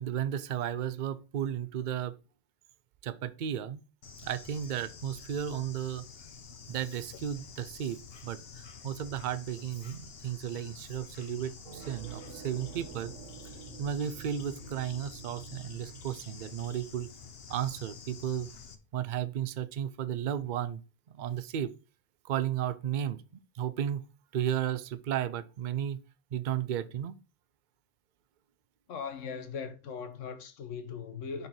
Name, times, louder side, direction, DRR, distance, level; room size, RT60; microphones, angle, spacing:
voice 1, 0.0-2.1 3.0-3.8 4.2-6.1 6.7-13.1 13.8-17.1 17.5-18.5 18.9-20.8 21.1-21.7 22.2-23.2 23.5-24.1 24.3-26.0 26.3-27.2, right 9 dB, 55° right, 0.6 m, -34 dB
Bird / Insect, 4.0-18.8, left 6 dB, 55° left, 1.1 m, -49 dB
sound 1, 11.6-17.5, right 7 dB, 90° right, 1.3 m, -49 dB
voice 2, 28.9-31.5, left 6 dB, 90° left, 1.2 m, -39 dB
5.6 x 4.4 x 5.5 m
omnidirectional pair, 1.3 m